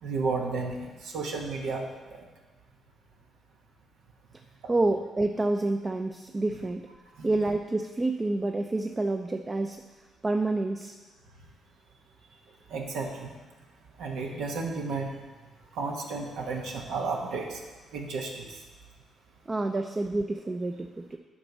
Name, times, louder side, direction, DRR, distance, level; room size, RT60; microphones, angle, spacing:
voice 1, 0.0-2.2 4.6-4.7 7.2-7.3 12.7-13.3 14.0-15.1 15.7-17.6 17.9-18.6, right 4 dB, 85° right, 0 dB, 1.1 m, -33 dB
voice 2, 4.7-6.9 7.2-9.8 10.2-10.9 19.5-21.2, right 2 dB, 25° right, 5 dB, 0.4 m, -28 dB
8.7 x 4.2 x 5.9 m, 1.2 s
cardioid pair, 90°, 0 cm